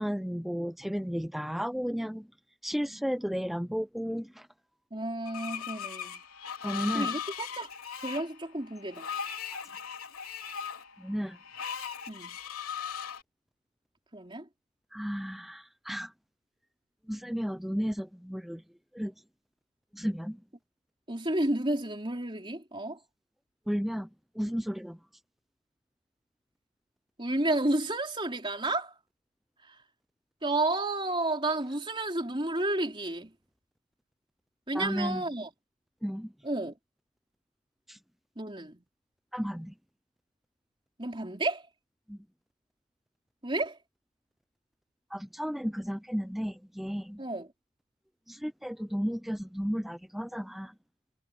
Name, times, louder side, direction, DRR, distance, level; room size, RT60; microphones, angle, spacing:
voice 1, 0.0-2.3 2.6-4.5 6.6-7.1 9.5-9.6 11.0-11.4 14.9-16.1 17.1-18.6 18.9-19.1 19.9-20.4 23.7-24.1 24.4-25.0 34.7-35.2 36.0-36.3 37.9-38.0 39.3-39.7 42.1-42.2 45.1-47.2 48.3-50.7, equal, ahead, 0.3 m, -33 dB
voice 2, 4.9-6.2 6.9-7.7 8.0-9.1 12.1-12.4 14.1-14.5 21.1-23.0 27.2-28.9 29.6-29.8 30.4-33.3 34.7-35.5 36.4-36.8 38.4-38.8 41.0-41.6 43.4-43.8 47.2-47.5, right 2 dB, 25° right, 3.9 m, -31 dB
Screech, 5.3-13.2, left 7 dB, 85° left, 3.8 m, -38 dB
head